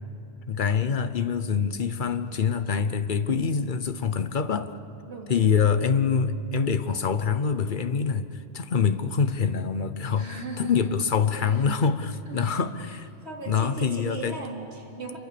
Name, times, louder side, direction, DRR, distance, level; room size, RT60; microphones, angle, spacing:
voice 1, 0.5-4.7 5.3-8.3 8.5-10.3 10.6-13.1 13.5-14.4, left 6 dB, 45° left, 11 dB, 1.0 m, -25 dB
voice 2, 5.1-5.5 10.1-11.0 11.4-11.6 12.3-12.6 12.9-15.2, right 3 dB, 60° right, -1 dB, 3.5 m, -38 dB
26.5 x 23.5 x 6.9 m, 2.8 s
omnidirectional pair, 1.2 m